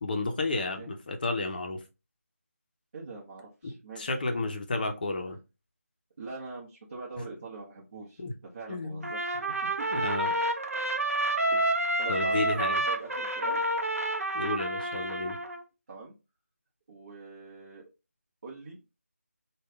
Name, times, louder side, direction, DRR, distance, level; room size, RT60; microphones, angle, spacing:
voice 1, 0.0-1.8 3.6-5.4 8.2-8.3 8.7-9.1 9.9-10.3 12.1-12.8 14.3-15.4, left 3 dB, 35° left, 0.6 m, -32 dB
voice 2, 2.9-4.4 6.2-9.9 11.5-13.6 15.9-16.1 16.9-17.8 18.4-18.8, right 3 dB, 40° right, 0.9 m, -44 dB
Trumpet, 9.0-15.6, right 1 dB, 70° right, 0.6 m, -29 dB
3.4 x 2.2 x 3.2 m
figure-of-eight pair, 165°, 8 cm